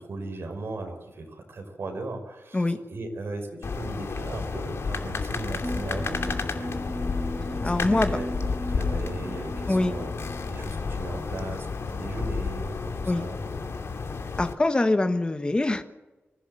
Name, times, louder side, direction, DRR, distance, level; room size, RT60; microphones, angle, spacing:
voice 1, 0.0-6.8 7.6-10.1 10.5-13.4, right 2 dB, 65° right, 4 dB, 5.5 m, -37 dB
sound 1, 3.6-14.5, left 4 dB, 80° left, 2.5 m, -31 dB
sound 2, 5.6-10.9, equal, 5° right, 4.2 m, -37 dB
voice 2, 7.6-8.2 9.7-9.9 13.1-13.2 14.4-15.8, left 2 dB, 20° left, 8 dB, 1.5 m, -24 dB
25.0 x 16.0 x 8.0 m, 1.1 s
wide cardioid pair, 170°, 4 cm